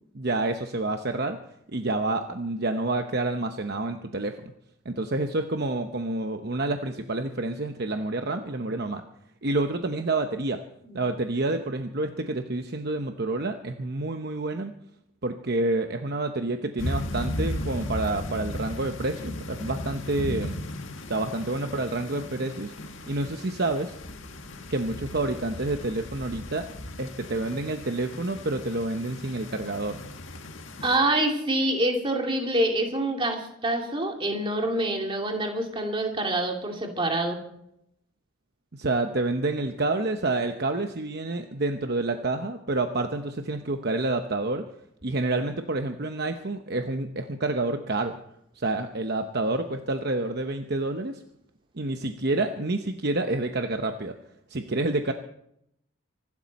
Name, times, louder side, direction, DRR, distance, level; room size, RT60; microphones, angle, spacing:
voice 1, 0.1-1.4 1.7-4.5 4.8-9.0 9.4-10.6 10.9-14.7 15.2-20.5 21.1-22.7 23.1-23.9 24.7-26.7 27.0-30.0 38.7-44.7 45.0-48.2 48.6-51.2 51.7-54.2 54.5-55.1, right 2 dB, 50° right, 6 dB, 0.9 m, -28 dB
sound 1, 16.8-31.0, left 1 dB, 65° left, 1.8 m, -36 dB
voice 2, 30.8-37.4, right 1 dB, 25° right, 2 dB, 2.7 m, -26 dB
26.0 x 12.0 x 4.2 m, 0.75 s
head